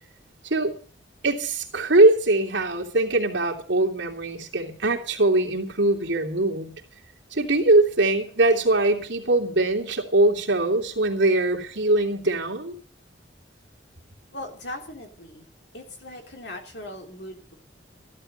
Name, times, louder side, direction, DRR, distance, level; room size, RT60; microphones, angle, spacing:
voice 1, 1.2-6.7 7.3-12.7, right 2 dB, 75° right, 0 dB, 3.0 m, -22 dB
voice 2, 14.3-15.5 15.7-17.5, left 1 dB, 60° left, 3 dB, 3.3 m, -39 dB
15.0 x 12.0 x 6.5 m, 0.43 s
head